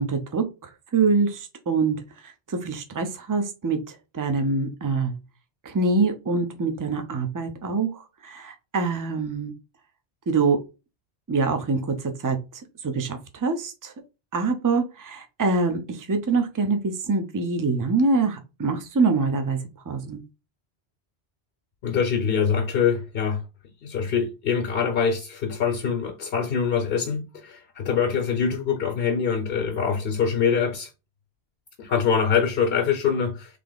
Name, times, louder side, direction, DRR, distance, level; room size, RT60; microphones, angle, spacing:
voice 1, 0.0-2.0 2.2-5.1 5.6-9.5 10.3-10.6 11.3-11.9 12.2-12.4 12.8-13.9 14.3-19.6 19.9-20.2, right 4 dB, 25° right, 0.5 m, -25 dB
voice 2, 21.8-23.4 23.8-30.9 31.8-33.6, left 6 dB, 65° left, 0.9 m, -24 dB
3.4 x 2.9 x 3.8 m
omnidirectional pair, 1.1 m